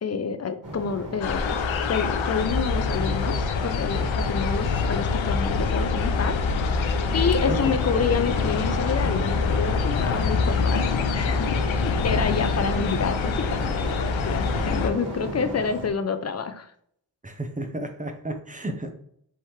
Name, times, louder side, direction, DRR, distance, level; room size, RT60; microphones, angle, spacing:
voice 1, 0.0-1.6 1.9-6.8 7.1-10.8 11.1-16.7, left 5 dB, 35° left, 9 dB, 0.6 m, -28 dB
sound 1, 0.6-15.9, right 1 dB, 45° right, 1.8 m, -36 dB
sound 2, 1.2-14.9, left 4 dB, 85° left, 0.6 m, -25 dB
voice 2, 17.2-18.9, right 1 dB, 15° right, 6 dB, 0.9 m, -32 dB
3.6 x 3.0 x 4.3 m, 0.68 s
cardioid pair, 40°, 46 cm